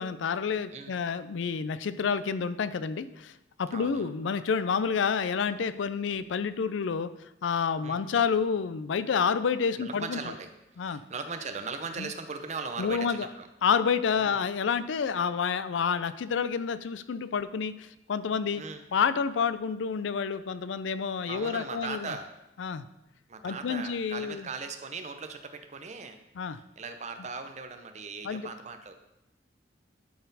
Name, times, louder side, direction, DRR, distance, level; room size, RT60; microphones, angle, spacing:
voice 1, 0.0-3.3 3.6-7.1 7.4-10.2 10.8-11.0 12.0-12.1 12.8-13.3 13.6-18.6 18.9-22.1 22.6-22.9 23.4-24.5 26.4-26.6 28.2-28.5, left 6 dB, 85° left, 14 dB, 0.4 m, -29 dB
voice 2, 3.7-4.1 7.8-8.0 9.8-10.5 10.8-13.5 14.2-14.5 18.6-18.8 21.3-22.3 23.3-26.2 26.5-29.0, right 4 dB, 40° right, 7 dB, 0.7 m, -39 dB
11.5 x 4.2 x 4.0 m, 0.89 s
head